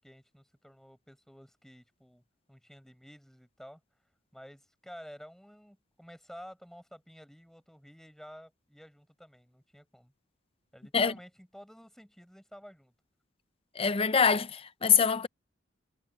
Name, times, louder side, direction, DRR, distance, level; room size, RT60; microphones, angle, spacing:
voice 1, 0.0-2.2 2.5-3.8 4.3-10.1 10.7-12.9, equal, ahead, 7.5 m, -51 dB
voice 2, 13.8-15.3, left 6 dB, 30° left, 0.5 m, -24 dB
head